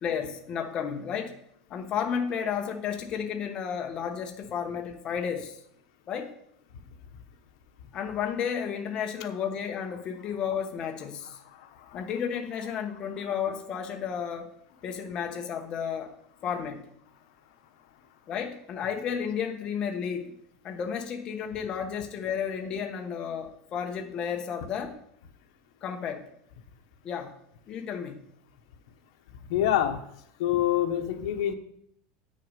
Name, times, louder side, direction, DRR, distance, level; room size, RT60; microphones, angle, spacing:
voice 1, 0.0-1.3 1.7-5.6 6.1-6.3 7.9-11.4 11.9-14.5 14.8-16.1 16.4-16.8 18.3-20.3 20.6-24.9 25.8-26.2 27.0-27.3 27.7-28.2, left 7 dB, 30° left, 3 dB, 1.0 m, -32 dB
voice 2, 11.5-12.0 29.5-30.0 30.4-31.5, left 11 dB, 75° left, 5 dB, 1.2 m, -26 dB
8.6 x 6.4 x 5.4 m, 0.72 s
supercardioid pair, 165°, 3 cm